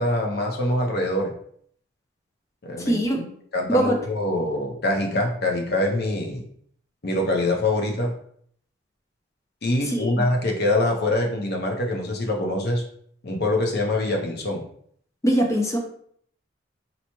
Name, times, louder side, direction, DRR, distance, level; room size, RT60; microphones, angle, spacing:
voice 1, 0.0-1.3 2.6-3.0 3.5-6.4 7.0-8.1 9.6-12.8 13.2-14.6, left 1 dB, 55° left, 2 dB, 0.7 m, -24 dB
voice 2, 2.8-3.2 3.7-4.0 9.9-10.3 15.2-15.8, equal, 15° left, 1 dB, 0.5 m, -22 dB
4.1 x 2.2 x 2.9 m, 0.63 s
head